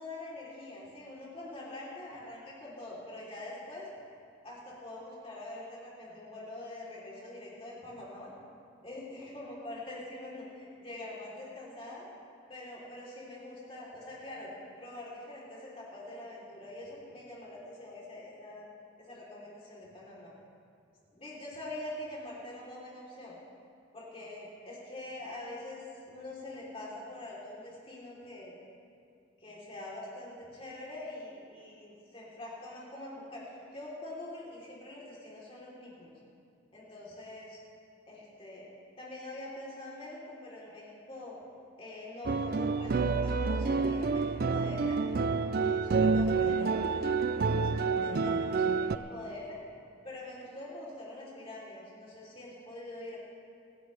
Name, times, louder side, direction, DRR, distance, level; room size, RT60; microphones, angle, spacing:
voice 1, 0.0-3.9 4.4-8.3 8.8-12.1 12.5-14.5 14.8-18.7 19.0-20.3 21.1-23.3 23.9-28.5 29.4-36.1 36.7-37.6 38.1-38.7 39.0-41.4 41.8-45.0 45.6-49.6 50.0-53.2, left 1 dB, 25° left, -6 dB, 3.5 m, -44 dB
sound 1, 42.2-49.0, right 4 dB, 45° right, 0.4 m, -28 dB
25.5 x 11.0 x 3.4 m, 2.4 s
head